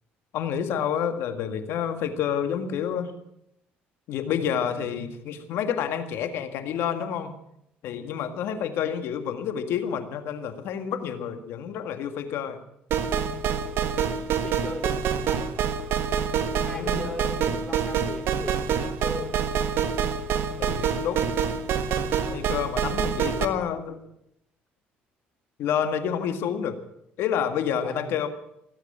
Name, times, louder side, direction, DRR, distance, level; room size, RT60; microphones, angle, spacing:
voice 1, 0.3-3.1 4.1-7.3 7.8-12.6 16.6-17.0 20.6-21.2 22.3-24.0 25.6-26.8 27.2-28.3, left 8 dB, 75° left, 8 dB, 1.9 m, -29 dB
sound 1, 12.9-23.5, right 7 dB, 70° right, 1.5 m, -26 dB
voice 2, 14.4-15.8 16.4-19.4 27.8-28.2, left 1 dB, 15° left, 4 dB, 3.9 m, -38 dB
17.5 x 8.2 x 8.8 m, 0.78 s
supercardioid pair, 85°, 4 cm